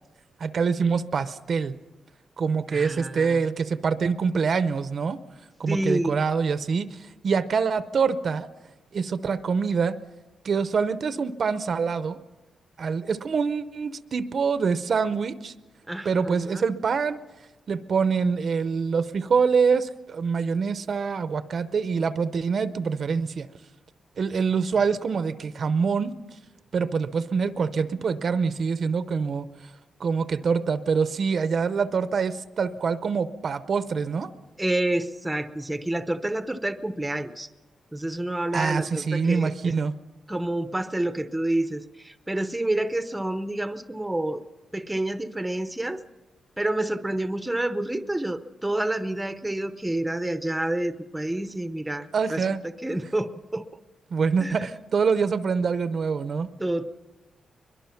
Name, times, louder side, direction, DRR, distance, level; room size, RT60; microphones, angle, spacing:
voice 1, 0.4-1.7 2.4-5.2 5.6-7.0 7.2-8.5 8.9-9.9 10.4-12.2 12.8-15.5 16.0-17.2 17.7-23.5 24.2-26.1 26.7-29.5 30.0-34.3 38.5-39.9 52.1-52.6 54.1-56.5, right 5 dB, 45° right, 12 dB, 0.7 m, -25 dB
voice 2, 2.7-3.4 5.7-6.2 15.9-16.6 34.6-37.5 37.9-39.7 40.3-44.4 44.7-46.0 46.6-52.4 52.8-53.6 54.4-54.7 56.6-56.8, right 1 dB, 5° right, 10 dB, 0.7 m, -28 dB
22.5 x 22.5 x 5.8 m, 1.1 s
wide cardioid pair, 170°, 0 cm